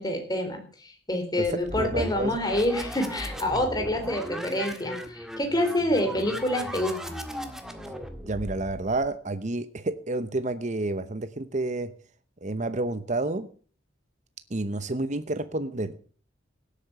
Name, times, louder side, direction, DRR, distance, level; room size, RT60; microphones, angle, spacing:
voice 1, 0.0-7.1, left 1 dB, 20° left, 4 dB, 3.8 m, -27 dB
sound 1, 1.4-9.1, equal, ahead, 1.7 m, -37 dB
voice 2, 1.4-2.4 8.2-11.9 12.4-13.5 14.5-16.1, right 2 dB, 40° right, 11 dB, 0.9 m, -30 dB
17.0 x 8.5 x 6.7 m, 0.43 s
head